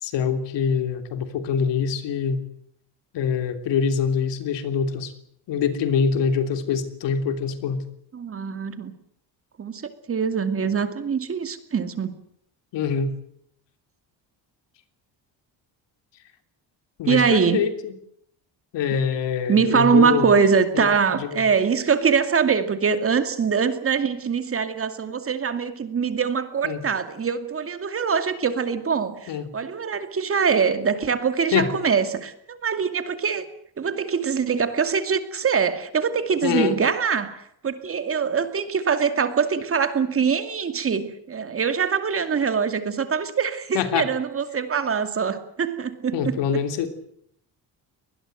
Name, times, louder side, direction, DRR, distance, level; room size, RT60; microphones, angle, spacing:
voice 1, 0.0-2.4 3.1-5.1 5.5-7.8 12.7-13.1 17.0-17.9 18.7-20.3 20.7-21.4 26.6-26.8 29.3-29.4 31.5-31.7 36.4-36.8 43.7-44.1 46.1-46.9, left 6 dB, 80° left, 8 dB, 3.3 m, -24 dB
voice 2, 8.1-8.9 9.6-12.1 17.1-17.6 19.5-33.4 33.8-46.4, right 6 dB, 30° right, 9 dB, 2.3 m, -23 dB
23.5 x 20.0 x 7.9 m, 0.70 s
cardioid pair, 160°, 42 cm